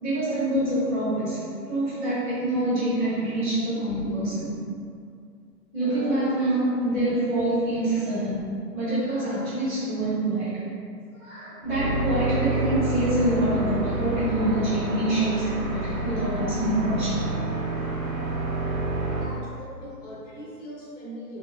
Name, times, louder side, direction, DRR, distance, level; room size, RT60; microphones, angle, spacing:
voice 1, 0.0-4.5 5.7-8.4 8.7-10.5 11.2-17.1, right 1 dB, 30° right, -13 dB, 1.5 m, -26 dB
sound 1, 11.6-19.2, right 2 dB, 55° right, 0.9 m, -28 dB
voice 2, 19.2-21.4, equal, 50° left, -7 dB, 0.9 m, -41 dB
4.2 x 2.0 x 2.3 m, 2.3 s
figure-of-eight pair, 125°, 49 cm